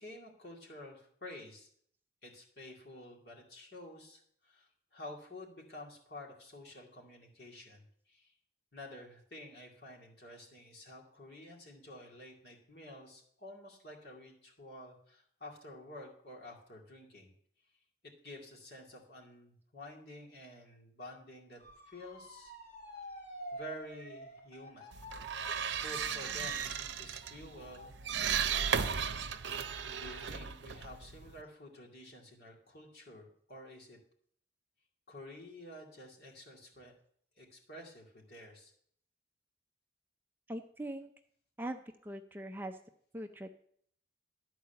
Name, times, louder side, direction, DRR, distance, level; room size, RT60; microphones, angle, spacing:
voice 1, 0.0-1.7 2.2-8.3 8.7-17.3 18.0-22.5 22.9-23.0 23.5-25.0 25.7-27.9 28.3-29.1 30.0-34.0 35.1-36.9 37.4-38.7, left 1 dB, 60° left, -1 dB, 2.4 m, -50 dB
Motor vehicle (road) / Siren, 21.6-30.5 30.9-31.4, right 1 dB, 40° left, 2.7 m, -50 dB
sound 1, 24.9-31.4, right 7 dB, 90° right, 0.6 m, -36 dB
voice 2, 40.5-41.1 41.6-42.8 43.1-43.5, right 1 dB, 10° right, 6 dB, 0.4 m, -41 dB
12.0 x 4.7 x 6.9 m, 0.63 s
head